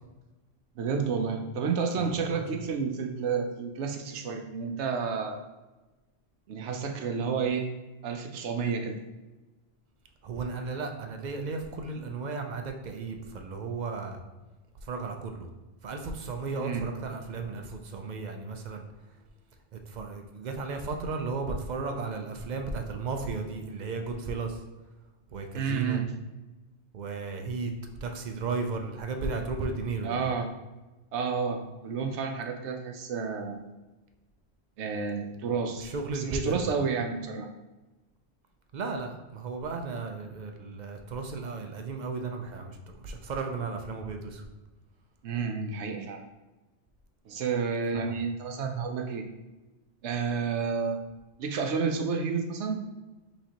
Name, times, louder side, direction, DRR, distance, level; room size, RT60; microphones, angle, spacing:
voice 1, 0.8-5.4 6.5-7.7 8.0-9.0 16.6-16.9 25.5-26.0 30.0-30.5 31.1-33.7 34.8-37.5 45.2-46.2 47.3-49.3 50.0-51.0 51.4-52.8, right 5 dB, 80° right, 4 dB, 0.9 m, -30 dB
voice 2, 2.0-2.6 10.2-14.2 14.8-15.5 15.8-18.9 19.7-24.6 25.3-26.0 26.9-27.7 28.0-30.3 35.8-36.7 38.7-44.5 47.9-48.1, right 4 dB, 50° right, 5 dB, 0.6 m, -34 dB
5.7 x 3.1 x 2.9 m, 1.1 s
omnidirectional pair, 1.2 m